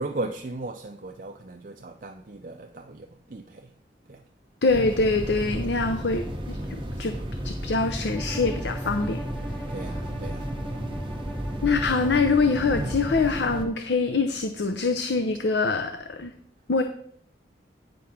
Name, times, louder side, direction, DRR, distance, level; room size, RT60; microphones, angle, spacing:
voice 1, 0.0-3.7 4.1-4.2 5.5-5.8 9.7-10.5 12.7-13.0, right 2 dB, 45° right, 0.5 m, -36 dB
voice 2, 4.6-7.2 7.4-9.2 11.6-16.3 16.7-16.8, left 3 dB, 80° left, 0.7 m, -24 dB
sound 1, 4.7-13.6, equal, 30° right, 1.1 m, -33 dB
Bowed string instrument, 8.1-13.8, right 1 dB, 10° left, 1.5 m, -41 dB
9.5 x 5.1 x 5.8 m
head